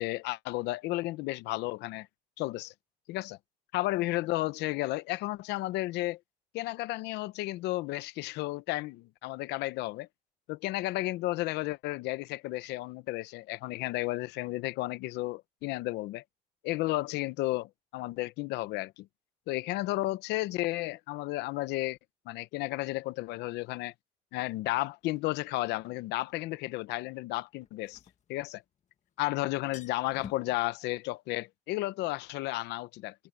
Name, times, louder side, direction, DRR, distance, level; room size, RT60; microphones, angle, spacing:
voice 1, 0.0-2.1 2.4-2.7 3.1-3.4 3.7-6.2 6.5-10.1 10.5-16.2 16.6-19.1 19.5-22.0 22.3-23.9 24.3-28.0 28.3-28.6 29.2-33.1, left 18 dB, 90° left, 0.8 m, -33 dB
sound 1, 25.2-25.3 27.6-28.9 29.2-29.3 29.5-30.6, left 8 dB, 45° left, 1.9 m, -49 dB
open air
cardioid pair, 110°, 17 cm